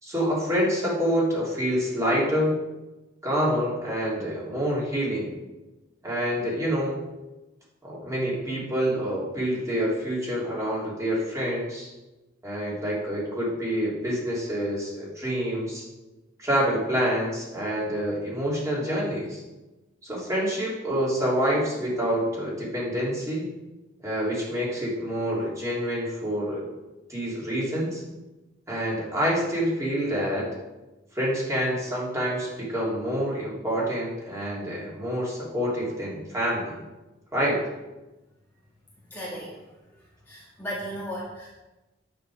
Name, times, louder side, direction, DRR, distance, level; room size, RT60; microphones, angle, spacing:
voice 1, 0.0-2.6 3.2-5.3 6.0-7.0 7.8-11.9 12.4-15.8 16.4-19.4 20.0-23.5 24.0-26.7 27.1-28.0 28.7-30.5 31.1-36.8 37.3-37.6, equal, 15° right, -6 dB, 3.2 m, -27 dB
voice 2, 39.1-39.6 40.3-41.5, equal, 10° left, -7 dB, 1.9 m, -35 dB
9.5 x 8.4 x 5.0 m, 1.1 s
head